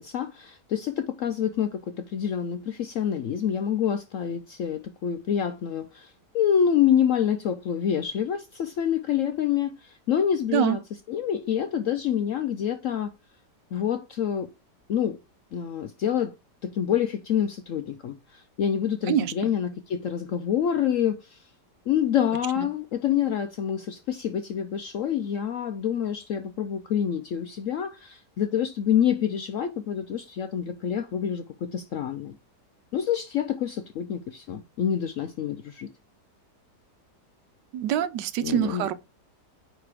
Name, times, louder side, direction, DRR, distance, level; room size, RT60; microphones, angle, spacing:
voice 1, 0.0-10.8 11.1-13.1 13.7-14.5 14.9-15.2 15.5-16.3 16.6-21.5 21.9-32.4 32.9-35.9 38.4-38.9, left 9 dB, 70° left, 0.7 m, -27 dB
voice 2, 37.7-38.9, right 10 dB, 80° right, 1.3 m, -25 dB
9.2 x 3.3 x 4.8 m
omnidirectional pair, 1.9 m